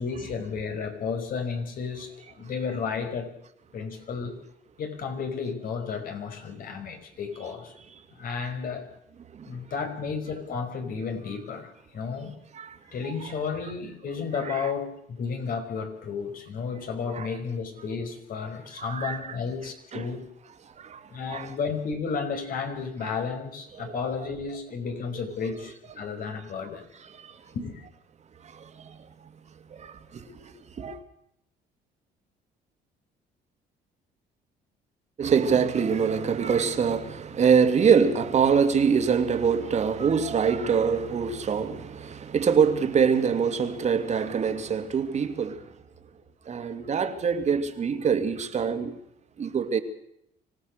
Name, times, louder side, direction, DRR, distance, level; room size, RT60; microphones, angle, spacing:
voice 1, 0.0-2.1 2.4-3.3 3.7-4.4 4.8-7.7 8.2-8.9 9.5-12.4 12.9-20.3 21.1-26.8 27.5-27.8, left 5 dB, 55° left, 5.3 m, -32 dB
voice 2, 18.8-19.4 19.9-20.1 20.6-21.6 23.0-23.1 23.7-24.0 27.0-27.5 28.4-29.1 29.7-31.0 35.2-45.8 46.5-49.0 49.4-49.8, right 6 dB, 40° right, 2.4 m, -25 dB
25.5 x 17.0 x 6.6 m
cardioid pair, 110°, 17 cm